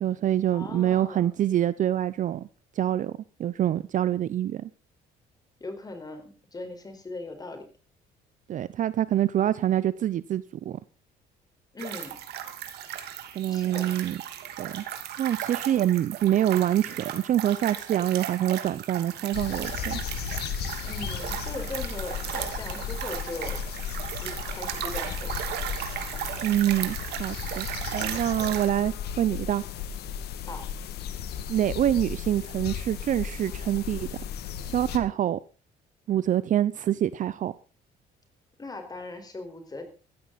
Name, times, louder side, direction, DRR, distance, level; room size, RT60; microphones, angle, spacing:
voice 1, 0.0-2.5 2.8-3.1 3.4-4.7 8.5-10.8 13.4-14.2 14.6-14.8 15.2-20.0 26.4-27.7 27.9-29.6 31.5-34.1 34.7-35.4 36.1-37.5, right 11 dB, 50° right, 0.6 m, -26 dB
voice 2, 0.5-1.3 5.6-7.6 11.7-12.2 13.5-13.9 20.8-23.6 24.2-25.6 26.0-26.2 28.4-28.5 30.4-30.7 38.6-39.8, left 2 dB, 20° left, 4.5 m, -39 dB
sound 1, 11.8-28.7, right 10 dB, 75° right, 2.5 m, -36 dB
sound 2, 19.3-35.0, left 8 dB, 70° left, 2.0 m, -35 dB
16.0 x 14.0 x 4.1 m
cardioid pair, 110°, 17 cm